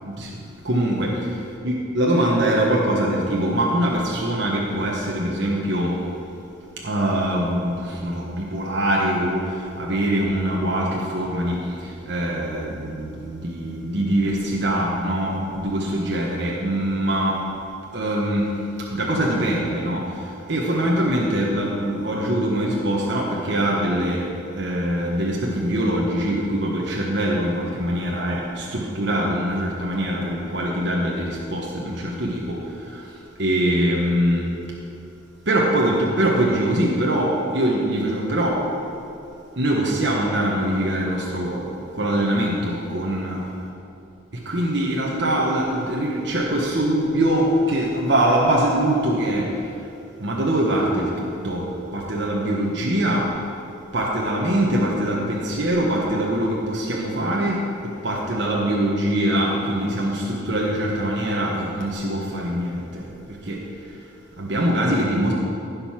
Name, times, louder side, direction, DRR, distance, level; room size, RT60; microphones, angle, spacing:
voice 1, 0.0-6.0 6.8-17.4 17.9-34.5 35.4-38.6 39.5-43.6 44.3-49.8 50.2-53.3 53.9-63.6 63.9-64.1 64.4-65.3, right 1 dB, 60° right, -3 dB, 1.2 m, -23 dB
15.0 x 5.4 x 5.8 m, 2.7 s
head